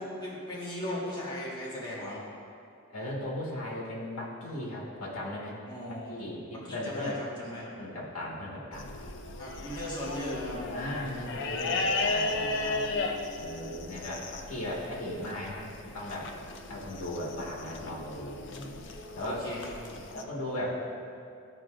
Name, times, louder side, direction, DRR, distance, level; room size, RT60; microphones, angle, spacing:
voice 1, 0.0-2.2 5.6-7.7 9.4-10.7 19.2-20.0, left 1 dB, 20° left, -7 dB, 1.5 m, -37 dB
voice 2, 2.9-5.6 6.1-7.2 7.6-8.9 9.7-10.2 10.7-12.9 13.4-16.3 16.7-18.8 19.1-19.4 20.1-20.8, left 1 dB, 75° left, -4 dB, 1.6 m, -37 dB
sound 1, 8.7-20.2, left 3 dB, 55° left, 0.5 m, -35 dB
12.0 x 4.8 x 2.5 m, 2.5 s
head